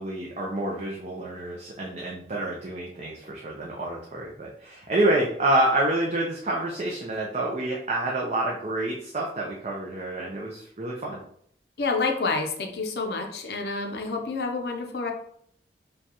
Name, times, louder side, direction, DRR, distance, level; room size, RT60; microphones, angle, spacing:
voice 1, 0.0-11.2, right 1 dB, 40° right, -3 dB, 0.5 m, -28 dB
voice 2, 11.8-15.1, left 3 dB, 70° left, 3 dB, 0.6 m, -28 dB
5.1 x 2.3 x 2.9 m, 0.65 s
head